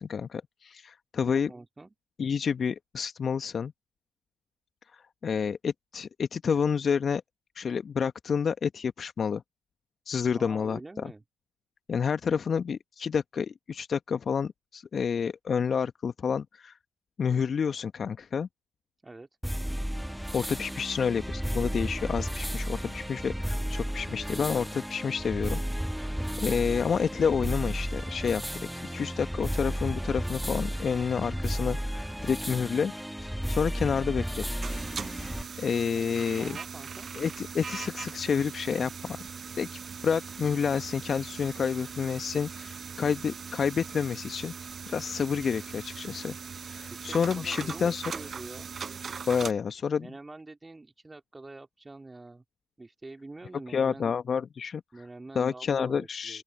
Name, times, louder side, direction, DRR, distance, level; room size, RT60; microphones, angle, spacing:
voice 1, 0.0-1.5 2.2-3.7 4.9-7.2 7.5-9.4 10.1-11.1 11.9-16.8 17.2-18.5 20.3-25.6 25.9-26.1 26.4-28.4 28.8-32.9 33.2-34.4 35.1-36.6 37.2-39.2 39.6-44.5 44.9-46.3 46.7-48.0 49.3-50.1 53.7-54.8 55.3-56.4, left 6 dB, 45° left, 1.3 m, -29 dB
voice 2, 1.2-1.9 10.3-11.2 19.0-19.3 35.9-37.1 46.9-48.8 50.0-52.4 52.8-54.1 54.9-56.4, right 2 dB, 20° right, 2.2 m, -46 dB
sound 1, 19.4-35.4, equal, 5° right, 1.6 m, -33 dB
sound 2, 34.6-49.5, right 6 dB, 40° right, 0.6 m, -40 dB
open air
hypercardioid pair, 55°, 0 cm